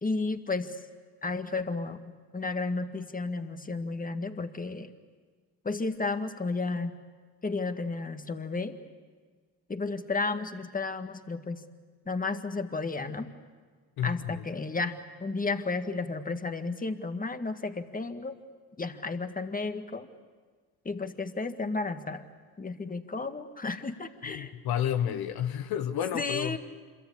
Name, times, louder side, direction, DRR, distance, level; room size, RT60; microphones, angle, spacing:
voice 1, 0.0-0.8 1.2-4.9 5.6-7.0 7.4-8.8 9.7-11.6 12.1-13.3 14.0-18.4 18.8-20.1 20.9-22.3 22.6-24.5 25.0-25.2 26.1-26.6, left 3 dB, 20° left, 8 dB, 1.8 m, -33 dB
voice 2, 24.2-26.6, left 10 dB, 70° left, 9 dB, 1.1 m, -30 dB
26.5 x 23.5 x 8.5 m, 1.5 s
supercardioid pair, 65°, 38 cm